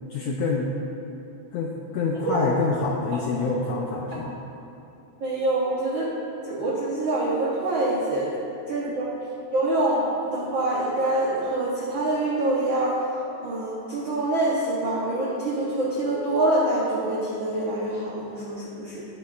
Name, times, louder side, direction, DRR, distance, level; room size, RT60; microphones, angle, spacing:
voice 1, 0.1-0.7 1.5-4.3, left 4 dB, 85° left, -1 dB, 1.5 m, -26 dB
voice 2, 5.2-6.1 6.4-8.3 8.7-9.1 9.5-13.0 13.4-19.0, right 2 dB, 80° right, -6 dB, 1.1 m, -25 dB
18.0 x 7.3 x 2.4 m, 2.7 s
omnidirectional pair, 3.7 m